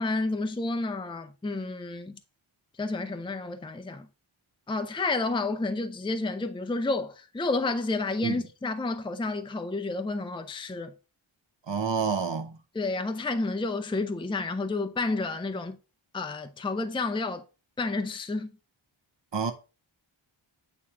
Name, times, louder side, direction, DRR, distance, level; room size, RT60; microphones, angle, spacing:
voice 1, 0.0-2.2 2.8-4.1 4.7-10.9 12.7-15.8 16.1-17.4 17.8-18.5, left 3 dB, 10° left, 0.5 m, -30 dB
voice 2, 11.7-12.5 19.3-19.5, right 5 dB, 60° right, 1.1 m, -28 dB
8.5 x 3.0 x 4.7 m
wide cardioid pair, 55°, 49 cm